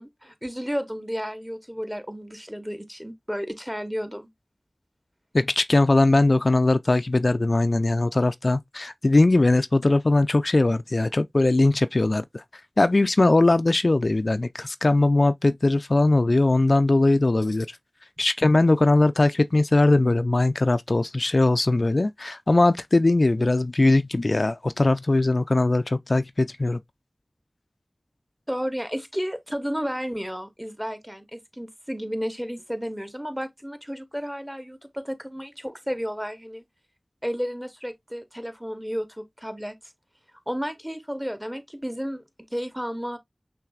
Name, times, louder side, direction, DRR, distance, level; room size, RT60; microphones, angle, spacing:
voice 1, 0.0-4.3 28.5-36.6 37.2-39.8 40.5-42.2 42.5-43.2, equal, 5° right, 0.9 m, -32 dB
voice 2, 5.3-12.4 12.8-17.7 18.2-26.8, left 2 dB, 60° left, 0.3 m, -20 dB
5.9 x 3.3 x 2.3 m
wide cardioid pair, 40°, 0 cm